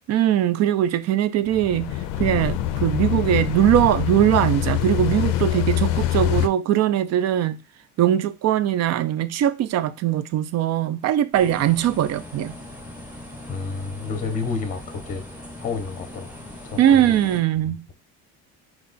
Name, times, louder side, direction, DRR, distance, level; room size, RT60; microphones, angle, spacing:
voice 1, 0.1-1.9 2.2-7.6 8.0-12.5 16.8-17.9, right 11 dB, 50° right, 0.5 m, -21 dB
sound 1, 1.5-6.5, left 12 dB, 85° left, 0.5 m, -24 dB
sound 2, 11.3-17.4, left 1 dB, 5° right, 0.8 m, -40 dB
voice 2, 13.5-15.2 15.6-16.3 16.6-17.1, left 4 dB, 25° left, 0.7 m, -30 dB
4.6 x 2.3 x 3.9 m
cardioid pair, 135°, 33 cm